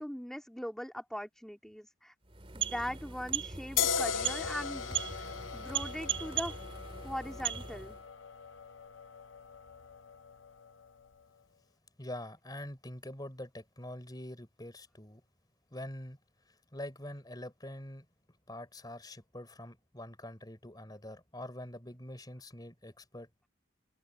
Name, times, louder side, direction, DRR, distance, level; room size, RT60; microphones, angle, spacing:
voice 1, 0.0-2.1 2.5-4.9 5.2-5.3 5.5-6.6 7.0-8.0, equal, ahead, 3.2 m, -40 dB
sound 1, 2.2-8.0, right 9 dB, 30° right, 2.8 m, -38 dB
sound 2, 3.8-11.1, left 7 dB, 80° left, 0.7 m, -38 dB
voice 2, 12.0-15.2 15.7-16.2 16.4-18.1 18.5-23.3, left 1 dB, 20° left, 3.8 m, -45 dB
head